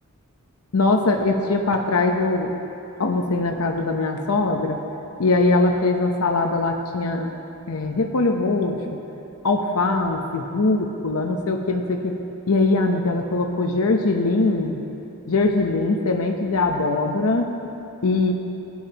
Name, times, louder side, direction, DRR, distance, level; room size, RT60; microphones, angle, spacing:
voice 1, 0.7-2.5 3.0-4.8 5.2-7.3 7.7-9.0 9.4-12.2 12.5-14.8 15.3-17.5 18.0-18.3, left 3 dB, 75° left, 3 dB, 0.8 m, -21 dB
20.0 x 8.4 x 2.9 m, 2.9 s
head